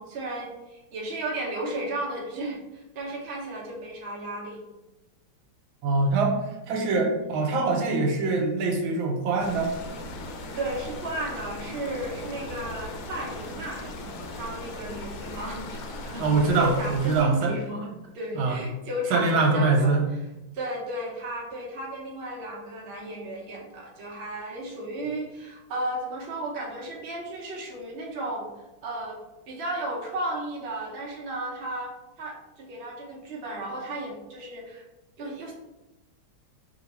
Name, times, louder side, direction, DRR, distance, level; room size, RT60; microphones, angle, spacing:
voice 1, 0.0-4.6 7.2-7.3 10.5-20.0 20.5-28.5 28.8-29.2 29.5-34.8 35.2-35.5, right 1 dB, 50° right, -3 dB, 0.8 m, -34 dB
voice 2, 5.8-6.3 6.7-9.7 16.2-17.5 18.3-18.6 19.1-20.0, right 3 dB, 85° right, 1 dB, 1.6 m, -23 dB
sound 1, 9.4-17.2, left 2 dB, 85° left, 1.5 m, -38 dB
3.5 x 2.8 x 4.2 m, 0.98 s
omnidirectional pair, 2.2 m